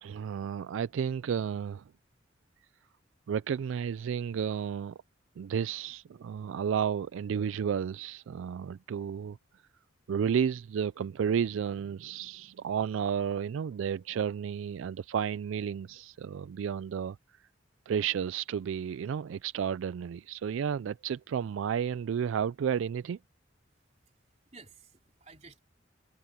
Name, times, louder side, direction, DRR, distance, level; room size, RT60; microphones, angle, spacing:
voice 1, 0.0-1.8 3.3-5.0 5.4-9.4 10.1-17.2 17.9-23.2, right 7 dB, 75° right, 0.3 m, -32 dB
voice 2, 23.7-25.6, right 4 dB, 35° right, 3.6 m, -55 dB
head